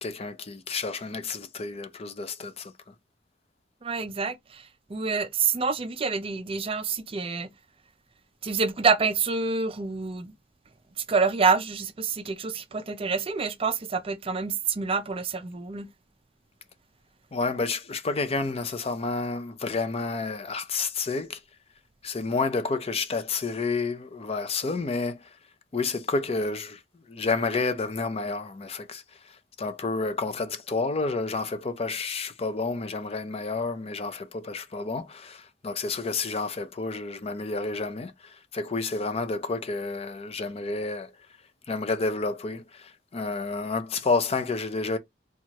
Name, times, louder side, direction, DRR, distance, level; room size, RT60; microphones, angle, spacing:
voice 1, 0.0-2.7 17.3-21.4 22.0-25.4 25.7-26.8 27.1-41.2 41.7-45.0, left 3 dB, 35° left, 0.5 m, -30 dB
voice 2, 3.8-7.5 8.4-10.3 11.0-15.9, right 5 dB, 30° right, 0.4 m, -27 dB
4.5 x 2.4 x 2.8 m
head